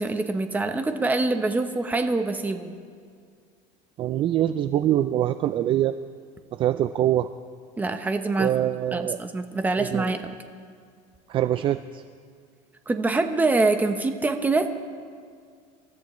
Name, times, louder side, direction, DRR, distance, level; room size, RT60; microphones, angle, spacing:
voice 1, 0.0-2.7 7.8-8.5 8.9-10.2 12.9-14.7, right 3 dB, 10° right, 7 dB, 0.9 m, -24 dB
voice 2, 4.0-6.0 6.5-7.3 8.4-9.2 9.8-10.2 11.3-12.0, right 12 dB, 35° right, 12 dB, 0.3 m, -24 dB
27.0 x 14.0 x 3.1 m, 2.1 s
cardioid pair, 150°, 15 cm